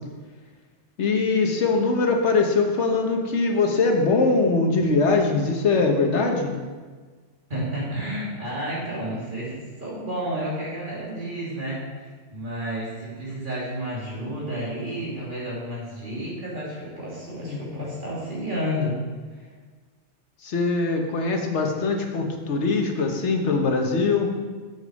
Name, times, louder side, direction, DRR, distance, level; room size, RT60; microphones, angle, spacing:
voice 1, 1.0-6.6 17.4-17.8 20.4-24.3, left 3 dB, 80° left, 3 dB, 1.4 m, -22 dB
voice 2, 7.5-19.0 19.3-19.5, equal, 45° right, -7 dB, 2.9 m, -31 dB
7.3 x 6.3 x 5.2 m, 1.4 s
omnidirectional pair, 1.2 m